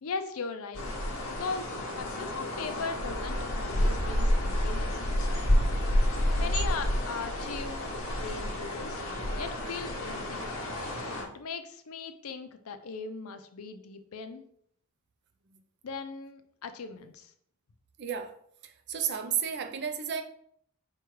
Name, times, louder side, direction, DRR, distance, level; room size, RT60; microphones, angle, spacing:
voice 1, 0.0-0.8 1.3-6.0 6.3-7.8 8.1-9.0 9.4-10.5 11.0-14.4 15.8-17.3, left 4 dB, 80° left, 8 dB, 0.5 m, -39 dB
sound 1, 0.7-11.2, left 1 dB, 65° left, 1.0 m, -29 dB
voice 2, 18.0-18.3 18.6-20.2, right 8 dB, 50° right, 7 dB, 0.5 m, -33 dB
4.7 x 2.3 x 4.7 m, 0.67 s
head